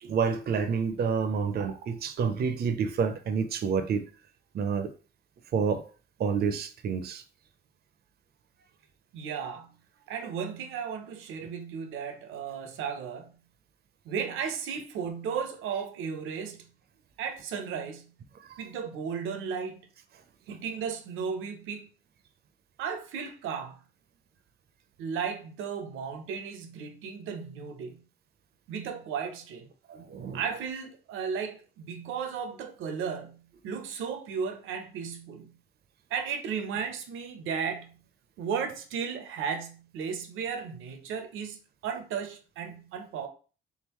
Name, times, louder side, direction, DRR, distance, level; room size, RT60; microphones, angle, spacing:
voice 1, 0.0-4.0 4.5-4.9 5.5-5.8 6.2-7.2 29.9-30.4, right 6 dB, 55° right, 0.6 m, -28 dB
voice 2, 9.1-9.8 10.1-13.4 14.0-16.7 17.2-18.1 18.6-19.8 20.5-21.9 22.8-23.8 25.0-28.1 28.7-29.7 30.3-35.6 36.1-38.0 38.4-43.3, right 6 dB, 85° right, 0.7 m, -35 dB
3.8 x 3.8 x 3.0 m
cardioid pair, 90°, 20 cm